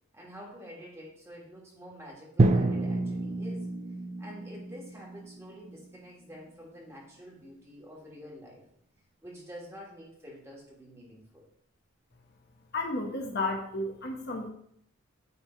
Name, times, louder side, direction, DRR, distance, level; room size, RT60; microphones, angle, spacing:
voice 1, 0.1-3.7 4.2-8.6 9.2-11.4, equal, 15° right, -3 dB, 1.6 m, -48 dB
Drum, 2.4-6.4, right 2 dB, 30° right, 0.4 m, -29 dB
voice 2, 12.7-14.5, left 2 dB, 50° left, 1 dB, 1.0 m, -32 dB
8.7 x 3.4 x 4.4 m, 0.68 s
head